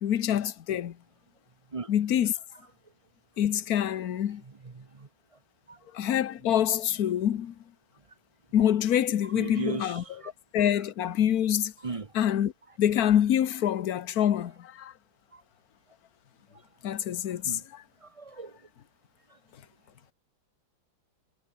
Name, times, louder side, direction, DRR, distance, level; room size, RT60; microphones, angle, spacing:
voice 1, 0.0-1.0 1.9-2.4 3.4-4.4 5.9-7.5 8.5-10.2 10.5-11.7 12.1-12.5 12.8-14.9 16.8-17.8, left 10 dB, 55° left, 1.3 m, -26 dB
voice 2, 4.8-5.1 5.7-5.8 9.3-10.3 11.8-12.1 15.3-15.4 17.4-17.6 18.0-18.5, right 4 dB, 35° right, 0.5 m, -37 dB
omnidirectional pair, 2.2 m